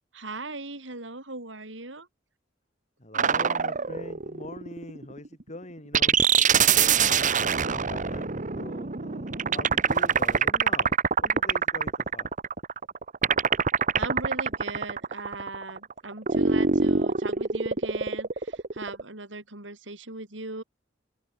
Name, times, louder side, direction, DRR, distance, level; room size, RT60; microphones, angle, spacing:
voice 1, 0.1-2.1 13.9-20.6, right 2 dB, 75° right, 5.5 m, -38 dB
voice 2, 3.0-7.3 7.7-12.3, left 1 dB, 40° left, 6.9 m, -43 dB
sound 1, 3.1-5.3 5.9-19.0, right 6 dB, 45° right, 1.3 m, -24 dB
open air
head